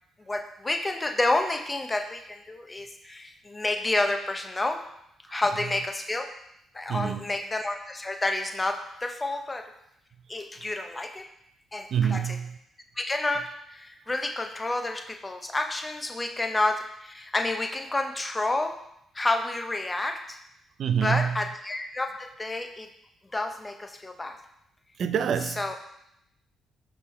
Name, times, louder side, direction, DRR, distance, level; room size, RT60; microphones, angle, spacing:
voice 1, 0.3-4.8 5.3-6.3 6.7-9.7 10.3-11.3 11.7-12.4 13.0-18.7 19.1-20.4 21.0-22.9 23.3-24.4 25.6-25.8, left 2 dB, 20° left, 6 dB, 0.7 m, -29 dB
voice 2, 6.9-7.3 11.9-12.5 20.8-21.4 25.0-25.8, right 8 dB, 65° right, 9 dB, 0.4 m, -26 dB
6.6 x 3.8 x 4.3 m, 0.77 s
cardioid pair, 90°, 0 cm